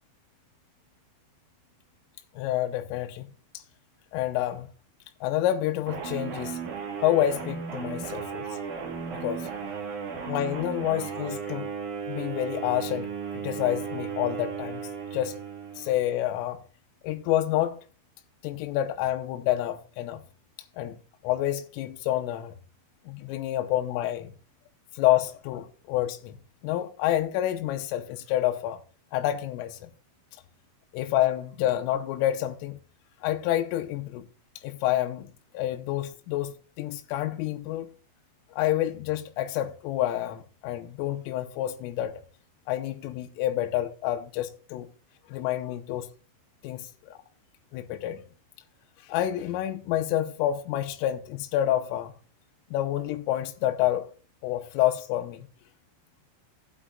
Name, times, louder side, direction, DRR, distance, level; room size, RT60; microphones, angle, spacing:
voice 1, 2.4-3.3 4.1-4.7 5.2-6.6 7.0-8.6 9.1-9.5 10.2-11.7 12.1-13.1 13.3-14.8 15.1-15.3 15.8-16.6 17.0-17.9 18.4-20.2 20.8-21.0 21.2-22.6 23.1-24.3 24.9-26.3 26.6-28.8 29.1-29.9 30.9-32.8 33.2-34.3 34.6-37.9 38.5-42.2 42.7-44.9 45.3-46.1 46.6-47.2 47.7-48.2 49.0-52.1 52.7-54.1 54.4-55.5, left 13 dB, 90° left, 3.3 m, -28 dB
sound 1, 5.9-16.1, right 6 dB, 55° right, 2.4 m, -35 dB
15.5 x 8.2 x 2.4 m
omnidirectional pair, 5.8 m